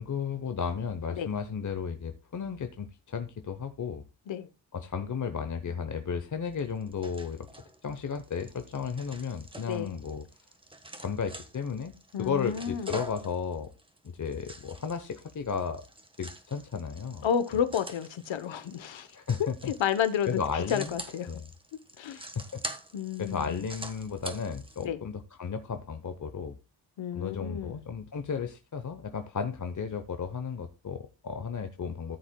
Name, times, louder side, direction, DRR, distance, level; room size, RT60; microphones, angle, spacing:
voice 1, 0.0-4.0 4.7-7.5 7.8-10.3 11.0-11.9 12.2-13.7 14.0-15.9 16.2-17.3 19.1-19.7 20.3-21.5 22.3-22.6 23.2-26.5 27.1-32.2, left 6 dB, 40° left, 0.8 m, -34 dB
sound 1, 6.5-24.9, right 1 dB, 10° right, 1.2 m, -46 dB
voice 2, 9.7-10.0 12.1-13.0 17.2-19.1 19.8-20.4 20.7-21.3 22.0-22.2 22.9-23.6 24.8-25.0 27.0-27.8, left 8 dB, 85° left, 1.0 m, -31 dB
14.0 x 7.3 x 2.2 m
cardioid pair, 80°, 44 cm